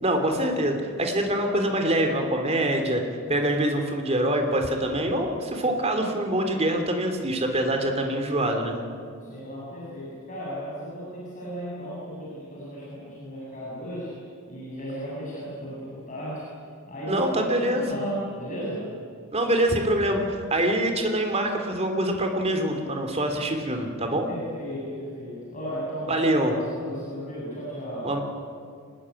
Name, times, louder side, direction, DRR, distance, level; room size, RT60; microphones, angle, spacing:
voice 1, 0.0-3.0 3.3-8.7 17.1-18.0 19.3-24.3 26.1-26.5 28.0-28.2, right 1 dB, 30° right, 4 dB, 3.2 m, -25 dB
voice 2, 9.2-14.2 14.5-16.5 16.9-18.9 24.3-28.2, equal, 35° left, -6 dB, 7.6 m, -35 dB
24.5 x 20.0 x 10.0 m, 2.2 s
head